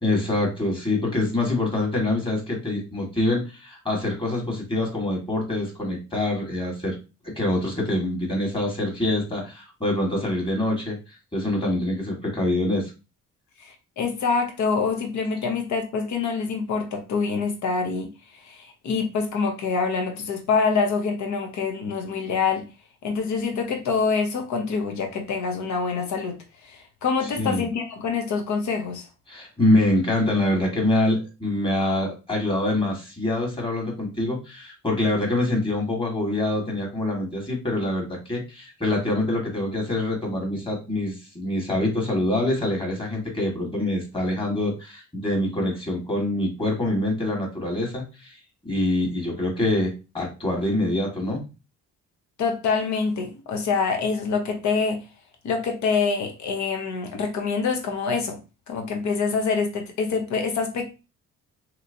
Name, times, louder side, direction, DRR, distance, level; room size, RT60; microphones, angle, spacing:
voice 1, 0.0-7.0 7.2-11.0 11.3-12.9 27.4-27.6 29.3-48.4 48.6-51.5, left 1 dB, 15° left, -1 dB, 1.6 m, -25 dB
voice 2, 13.6-18.1 18.4-22.6 23.0-26.4 26.7-29.1 52.4-55.0 55.4-58.4 58.7-60.9, left 5 dB, 70° left, 4 dB, 1.0 m, -25 dB
3.0 x 2.9 x 2.6 m, 0.30 s
cardioid pair, 90°, 30 cm